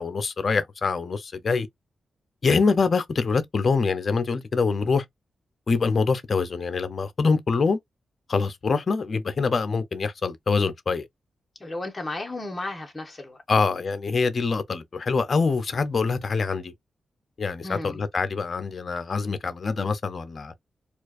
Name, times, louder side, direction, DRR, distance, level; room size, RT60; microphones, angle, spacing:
voice 1, 0.0-1.7 2.4-5.0 5.7-7.8 8.3-11.1 13.5-16.7 17.4-20.5, left 4 dB, 45° left, 0.6 m, -24 dB
voice 2, 11.6-13.4 17.6-18.0, left 2 dB, 20° left, 1.3 m, -34 dB
4.4 x 2.4 x 2.5 m
cardioid pair, 105°, 0 cm